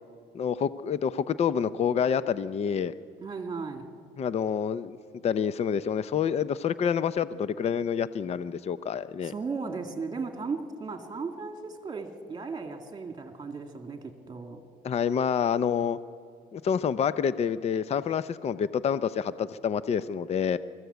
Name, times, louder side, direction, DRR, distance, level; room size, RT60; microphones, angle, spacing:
voice 1, 0.3-2.9 4.2-5.0 5.2-9.3 14.8-16.0 16.5-20.6, left 7 dB, 40° left, 15 dB, 0.6 m, -27 dB
voice 2, 3.2-3.9 9.2-14.6, right 4 dB, 25° right, 5 dB, 2.2 m, -36 dB
23.5 x 14.5 x 8.1 m, 2.1 s
cardioid pair, 110°, 17 cm